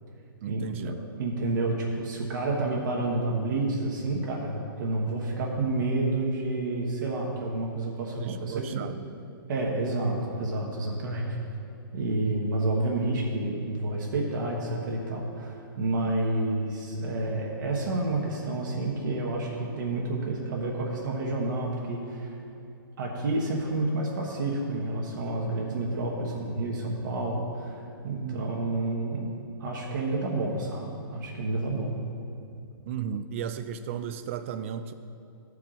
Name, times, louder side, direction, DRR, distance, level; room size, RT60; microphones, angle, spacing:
voice 1, 0.4-1.0 8.2-9.1 28.2-28.4 32.9-34.9, right 8 dB, 35° right, 11 dB, 0.3 m, -35 dB
voice 2, 1.2-8.8 9.5-11.4 11.9-22.4 23.0-29.3 29.6-32.0, right 2 dB, 55° right, -2 dB, 1.2 m, -29 dB
13.0 x 4.7 x 3.8 m, 2.5 s
hypercardioid pair, 155°, 12 cm